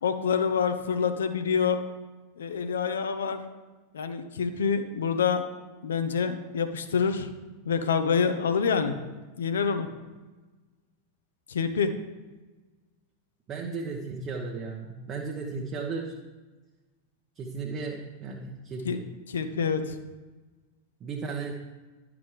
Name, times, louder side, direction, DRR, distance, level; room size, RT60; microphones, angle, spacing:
voice 1, 0.0-1.8 2.4-3.4 3.9-5.4 5.8-7.3 7.6-9.0 9.4-9.9 11.5-11.9 18.8-19.0 19.3-19.9, left 6 dB, 65° left, 8 dB, 0.7 m, -26 dB
voice 2, 13.5-16.2 17.4-19.0 21.0-21.5, right 4 dB, 30° right, 0 dB, 0.9 m, -35 dB
11.0 x 6.0 x 3.3 m, 1.2 s
figure-of-eight pair, 90°, 0 cm